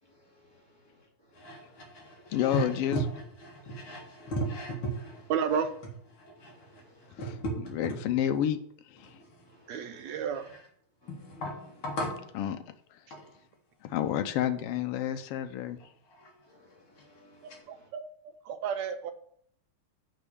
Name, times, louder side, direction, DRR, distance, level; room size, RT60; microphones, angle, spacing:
voice 1, 0.2-0.6 1.6-2.3 3.6-3.9 4.2-4.5 5.0-5.2 6.4-7.2 9.6-9.8 11.0-12.1 16.5-17.8, left 1 dB, 10° left, -5 dB, 2.2 m, -60 dB
sound 1, 1.4-8.4 9.0-10.7 11.1-12.3 13.1-13.4 15.8-15.9 16.1-16.3 17.0-17.1 17.5-17.6, right 1 dB, 50° left, 2.3 m, -37 dB
voice 2, 2.3-3.1 7.1-8.6 8.8-9.2 12.3-12.6 12.9-13.0 13.8-15.8, left 10 dB, 85° left, 8 dB, 1.3 m, -30 dB
voice 3, 5.3-5.7 9.7-10.5 17.4-19.1, right 7 dB, 75° right, 8 dB, 1.8 m, -32 dB
6.8 x 5.3 x 6.9 m, 0.64 s
omnidirectional pair, 3.4 m